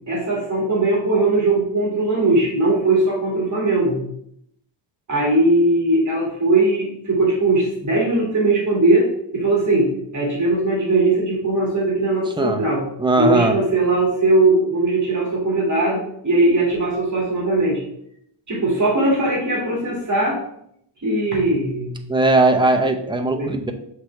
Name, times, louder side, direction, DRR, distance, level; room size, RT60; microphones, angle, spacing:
voice 1, 0.1-4.0 5.1-9.1 9.3-12.8 13.1-17.8 18.5-20.4 21.0-22.0 23.3-23.6, right 2 dB, 35° right, -3 dB, 2.1 m, -19 dB
voice 2, 13.0-13.6 22.1-23.7, right 2 dB, 10° right, 4 dB, 0.5 m, -18 dB
6.0 x 3.2 x 5.7 m, 0.71 s
wide cardioid pair, 140°, 48 cm